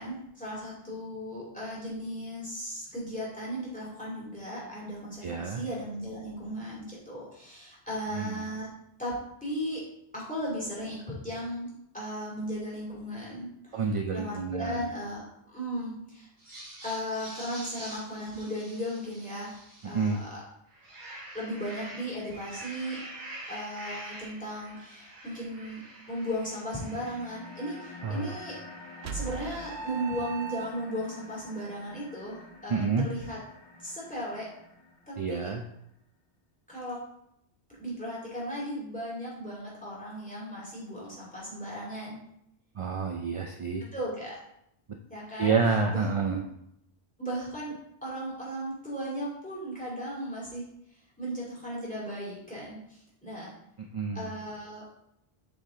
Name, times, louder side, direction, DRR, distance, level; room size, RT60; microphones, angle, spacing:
voice 1, 0.0-8.7 9.0-9.1 9.4-9.8 10.1-11.7 11.9-15.2 15.5-16.3 16.8-20.4 21.3-23.0 23.5-25.8 26.1-28.6 29.1-33.4 33.8-34.5 35.1-35.5 36.7-37.0 37.8-42.2 43.9-44.4 45.1-45.6 45.9-46.4 47.2-47.7 48.0-50.6 51.2-53.5 54.1-54.8, equal, 5° left, -6 dB, 2.7 m, -36 dB
voice 2, 5.2-5.6 8.1-8.4 13.7-14.9 19.8-20.2 28.0-28.4 32.7-33.1 35.2-35.6 42.8-43.8 45.4-46.4 53.8-54.3, right 4 dB, 45° right, 3 dB, 0.4 m, -29 dB
sound 1, 16.4-20.3 20.7-29.4, right 1 dB, 75° right, 2.4 m, -46 dB
sound 2, 26.7-35.7, left 2 dB, 35° left, 2.0 m, -49 dB
sound 3, 29.0-31.1, right 7 dB, 90° right, 0.9 m, -38 dB
7.8 x 4.1 x 3.7 m, 0.77 s
omnidirectional pair, 1.1 m